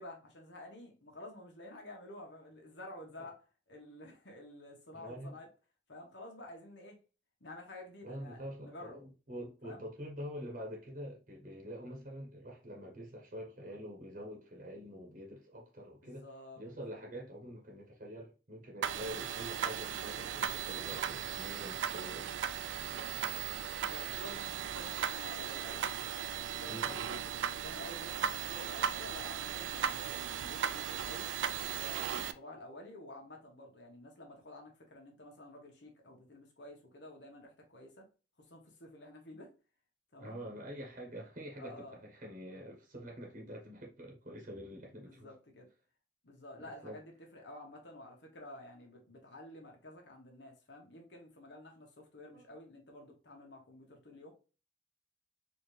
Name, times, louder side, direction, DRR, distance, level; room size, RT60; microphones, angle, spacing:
voice 1, 0.0-5.5 5.9-7.0 7.4-9.0 9.6-9.9 16.0-16.6 18.8-19.0 22.7-23.4 23.9-25.8 26.6-31.3 31.7-38.1 38.5-39.5 40.1-40.4 41.6-42.0 44.9-45.7 46.2-54.3, left 1 dB, 70° left, 1.2 m, -51 dB
voice 2, 4.9-5.4 8.0-16.3 16.6-22.4 26.5-27.1 40.2-45.3 46.6-47.0 52.3-52.4, equal, 45° right, 1.0 m, -46 dB
sound 1, 18.8-32.3, right 8 dB, 85° right, 0.3 m, -37 dB
4.1 x 2.8 x 3.2 m
head